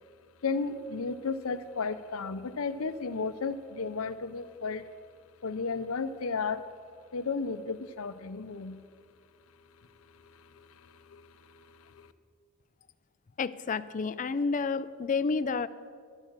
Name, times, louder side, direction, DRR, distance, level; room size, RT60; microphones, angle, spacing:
voice 1, 0.4-4.8 5.4-6.6 7.1-8.8 10.5-10.7 11.0-11.2 11.8-12.1, left 4 dB, 75° left, 12 dB, 0.6 m, -33 dB
voice 2, 13.4-15.7, left 4 dB, 35° left, 16 dB, 0.4 m, -30 dB
12.0 x 8.6 x 7.3 m, 2.1 s
head